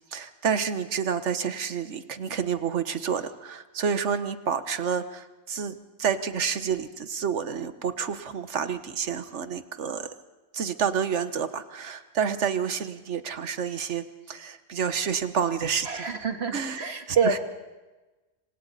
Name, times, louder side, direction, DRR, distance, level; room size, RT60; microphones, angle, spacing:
voice 1, 0.1-5.7 6.0-10.1 10.5-16.0 16.5-16.8 17.1-17.4, right 7 dB, 85° right, 11 dB, 1.4 m, -29 dB
voice 2, 15.8-17.4, right 5 dB, 65° right, 6 dB, 1.9 m, -26 dB
26.5 x 25.5 x 4.1 m, 1.1 s
omnidirectional pair, 1.2 m